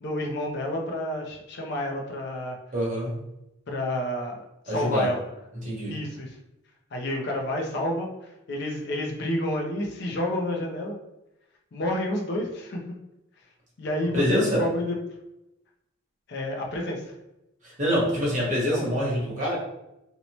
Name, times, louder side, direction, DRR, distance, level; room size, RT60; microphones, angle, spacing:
voice 1, 0.0-2.6 3.7-5.2 5.9-6.4 6.9-11.0 11.7-13.0 13.8-15.0 16.3-17.2 18.7-18.8, left 1 dB, 50° left, 0 dB, 0.4 m, -30 dB
voice 2, 2.7-3.1 4.7-5.1 5.6-5.9 14.1-14.6 17.6-19.5, equal, 35° right, -4 dB, 0.8 m, -25 dB
2.6 x 2.0 x 2.9 m, 0.88 s
head